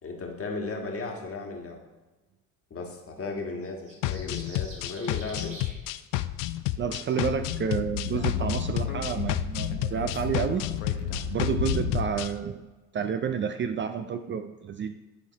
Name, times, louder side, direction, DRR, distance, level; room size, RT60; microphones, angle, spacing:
voice 1, 0.0-1.8 2.7-5.6, left 3 dB, 35° left, 1 dB, 1.7 m, -35 dB
sound 1, 3.6-5.7, right 2 dB, 70° right, 2.3 m, -45 dB
sound 2, 4.0-12.3, left 16 dB, 60° left, 0.4 m, -31 dB
voice 2, 6.8-10.6 11.3-12.7 12.9-15.0, right 7 dB, 30° right, 8 dB, 0.4 m, -30 dB
Speech / Wind, 7.4-12.3, left 5 dB, 90° left, 0.8 m, -32 dB
10.0 x 3.9 x 4.1 m, 1.2 s
hypercardioid pair, 60°, 37 cm